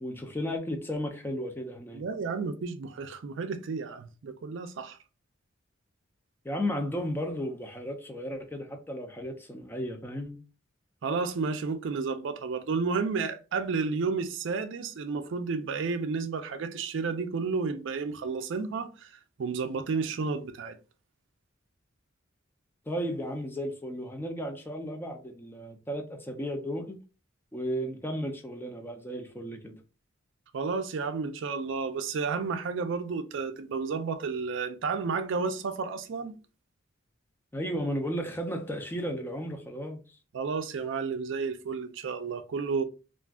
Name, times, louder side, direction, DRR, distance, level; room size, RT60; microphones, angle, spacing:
voice 1, 0.0-2.0 6.4-10.4 22.9-27.0 27.5-29.8 37.5-40.0, equal, 10° left, 0.5 m, -34 dB
voice 2, 1.9-5.0 11.0-19.1 19.4-20.8 30.5-36.3 40.3-42.8, right 4 dB, 65° right, 0.4 m, -31 dB
2.4 x 2.3 x 3.5 m
head